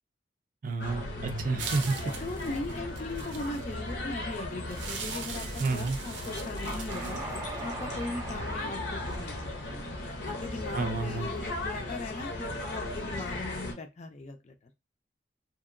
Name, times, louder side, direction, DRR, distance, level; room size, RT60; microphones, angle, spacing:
voice 1, 0.6-2.0 5.6-6.0 10.7-11.3, right 3 dB, 50° right, 0.4 m, -30 dB
sound 1, 0.8-13.7, left 1 dB, 70° left, 0.8 m, -37 dB
sound 2, 1.6-3.7 4.7-7.7, right 6 dB, 90° right, 0.6 m, -41 dB
voice 2, 2.2-7.2 7.6-14.5, left 2 dB, 40° left, 0.5 m, -39 dB
Train, 6.9-11.3, right 1 dB, 20° right, 0.8 m, -42 dB
2.9 x 2.6 x 2.5 m
head